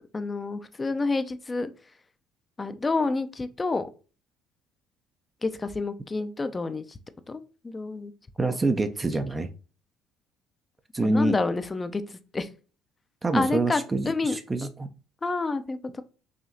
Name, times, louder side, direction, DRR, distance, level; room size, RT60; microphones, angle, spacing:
voice 1, 0.1-1.7 2.6-3.9 5.4-7.0 7.3-8.1 8.4-8.6 11.0-12.5 13.3-14.4 15.2-16.0, left 3 dB, 25° left, 10 dB, 0.5 m, -29 dB
voice 2, 8.4-9.5 10.9-11.4 13.2-14.9, right 2 dB, 25° right, 8 dB, 0.5 m, -26 dB
5.0 x 2.7 x 2.7 m, 0.35 s
supercardioid pair, 70°, 0 cm